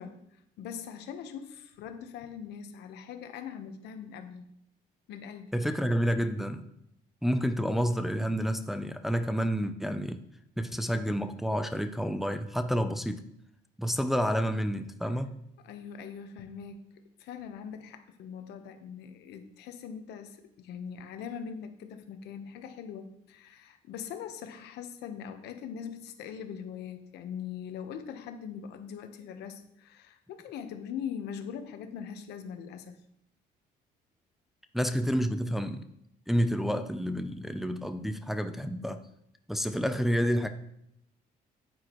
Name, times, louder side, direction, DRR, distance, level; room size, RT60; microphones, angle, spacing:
voice 1, 0.0-4.4 5.1-5.5 15.6-16.9 17.2-33.0, left 7 dB, 80° left, 7 dB, 1.1 m, -41 dB
voice 2, 5.5-6.6 7.2-10.2 10.6-13.2 13.8-15.4 34.7-35.8 36.3-39.0 39.5-40.5, equal, ahead, 7 dB, 0.6 m, -29 dB
9.4 x 8.8 x 3.1 m, 0.77 s
cardioid pair, 110°, 17 cm